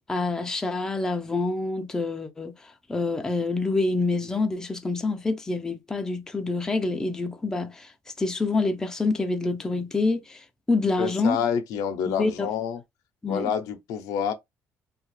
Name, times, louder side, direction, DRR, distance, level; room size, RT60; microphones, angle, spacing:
voice 1, 0.1-11.4 12.1-12.5 13.2-13.5, left 3 dB, 10° left, 0.4 m, -27 dB
voice 2, 11.0-12.8 13.3-14.3, left 8 dB, 85° left, 0.6 m, -28 dB
2.8 x 2.4 x 3.1 m
cardioid pair, 150°, 6 cm